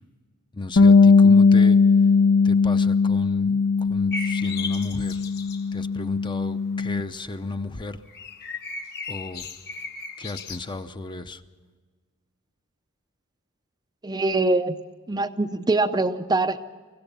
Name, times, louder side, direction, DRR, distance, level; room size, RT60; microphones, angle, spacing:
voice 1, 0.5-1.8 2.4-5.2 5.7-8.0 9.1-9.5 10.2-11.4, left 2 dB, 20° left, 9 dB, 0.7 m, -34 dB
Bass guitar, 0.8-7.0, left 4 dB, 65° left, 0.7 m, -18 dB
sound 1, 4.1-5.7 8.1-10.6, left 4 dB, 50° left, 1.5 m, -36 dB
voice 2, 14.0-14.8 15.1-16.6, right 2 dB, 20° right, 8 dB, 0.5 m, -23 dB
24.5 x 15.5 x 6.9 m, 1.5 s
head